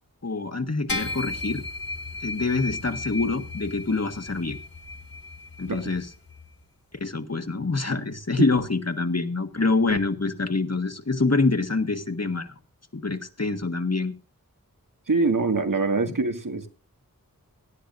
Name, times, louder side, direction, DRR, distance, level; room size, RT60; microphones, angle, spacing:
voice 1, 0.2-1.6 2.2-4.6 5.6-6.1 7.0-12.5 12.9-14.1 16.1-16.2, left 3 dB, 50° left, 1.6 m, -26 dB
sound 1, 0.9-6.5, left 3 dB, 85° left, 2.1 m, -35 dB
voice 2, 15.1-16.7, right 3 dB, 70° right, 2.0 m, -24 dB
18.0 x 12.5 x 2.6 m
wide cardioid pair, 45°, 34 cm